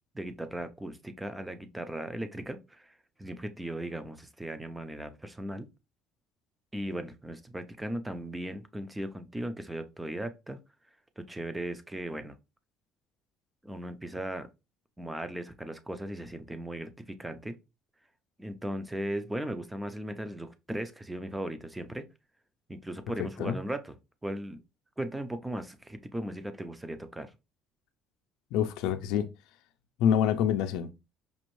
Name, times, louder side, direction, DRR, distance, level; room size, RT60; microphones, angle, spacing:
voice 1, 0.1-5.7 6.7-10.6 11.2-12.4 13.6-14.5 15.0-17.6 18.4-22.1 22.7-24.0 24.2-24.6 25.0-27.3, right 1 dB, 10° right, 0.5 m, -37 dB
voice 2, 23.2-23.6 28.5-29.3 30.0-30.9, left 9 dB, 80° left, 0.4 m, -26 dB
5.2 x 2.5 x 3.1 m
cardioid pair, 115°, 0 cm